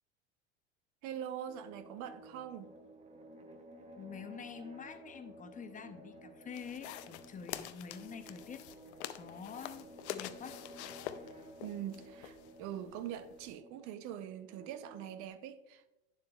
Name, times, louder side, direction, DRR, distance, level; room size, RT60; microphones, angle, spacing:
voice 1, 1.0-2.7 11.6-15.9, right 10 dB, 60° right, 0.7 m, -43 dB
sound 1, 1.5-15.3, right 1 dB, 20° right, 0.9 m, -54 dB
voice 2, 4.0-8.7 9.2-10.6, left 6 dB, 25° left, 0.6 m, -47 dB
sound 2, 6.5-13.5, left 12 dB, 85° left, 0.5 m, -46 dB
9.4 x 7.4 x 2.3 m
supercardioid pair, 100°, 33 cm